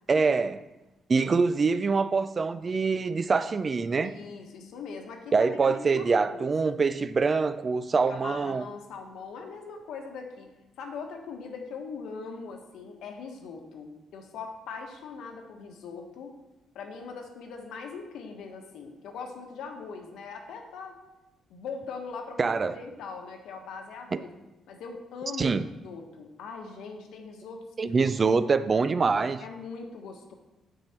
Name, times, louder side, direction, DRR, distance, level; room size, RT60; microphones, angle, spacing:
voice 1, 0.1-0.6 1.1-4.1 5.3-8.6 22.4-22.8 24.1-24.2 25.4-25.7 27.8-29.4, right 4 dB, 25° right, 0.3 m, -24 dB
voice 2, 4.0-6.7 8.1-10.5 10.8-16.4 16.7-21.0 21.5-24.3 24.7-25.6 25.8-27.9 29.4-30.3, left 5 dB, 75° left, 1.4 m, -41 dB
9.0 x 7.7 x 4.4 m
cardioid pair, 170°, 0 cm